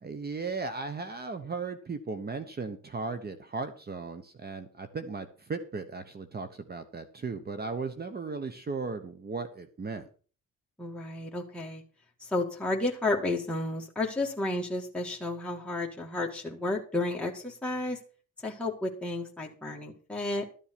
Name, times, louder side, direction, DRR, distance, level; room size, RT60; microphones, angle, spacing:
voice 1, 0.0-10.1, right 4 dB, 30° right, 10 dB, 1.1 m, -36 dB
voice 2, 10.8-11.8 12.2-18.0 18.4-20.5, left 2 dB, 5° left, -2 dB, 2.1 m, -32 dB
12.5 x 7.2 x 6.1 m, 0.40 s
cardioid pair, 90°, 30 cm